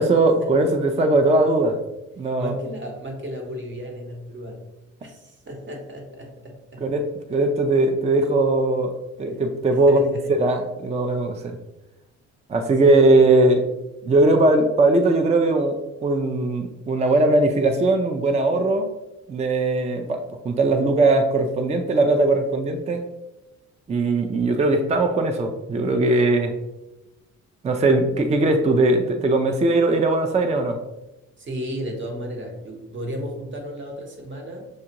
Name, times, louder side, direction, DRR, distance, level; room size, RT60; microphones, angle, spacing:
voice 1, 0.0-1.8 2.2-2.6 6.8-11.6 12.5-13.6 14.0-18.9 19.3-23.0 23.9-26.5 27.6-30.8, right 2 dB, 20° right, 5 dB, 0.4 m, -20 dB
voice 2, 2.2-4.7 5.0-6.9 9.3-9.4 9.7-10.3 12.8-13.0 31.4-34.7, equal, 40° right, 2 dB, 1.1 m, -34 dB
6.3 x 2.4 x 2.9 m, 0.97 s
cardioid pair, 90°, 30 cm